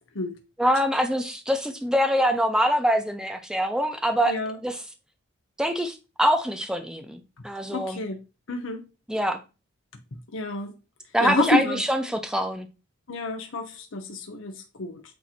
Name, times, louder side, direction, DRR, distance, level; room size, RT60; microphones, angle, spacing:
voice 1, 0.6-4.4 4.6-4.8 5.6-8.0 9.1-9.4 11.1-12.7, equal, 5° right, 0.7 m, -24 dB
voice 2, 4.2-4.6 7.7-8.9 10.3-10.8 11.2-11.8 13.1-15.0, left 2 dB, 80° left, 0.9 m, -29 dB
8.4 x 2.9 x 4.4 m
head